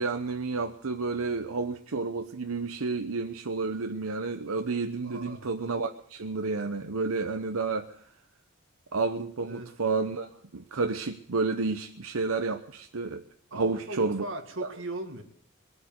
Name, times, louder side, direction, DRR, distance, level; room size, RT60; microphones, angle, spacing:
voice 1, 0.0-7.9 8.9-13.2 13.5-14.3 14.6-14.7, right 4 dB, 90° right, 0.8 m, -30 dB
voice 2, 5.0-5.5 9.4-9.7 13.5-15.2, right 1 dB, 65° right, 2.1 m, -38 dB
21.5 x 8.1 x 7.9 m
head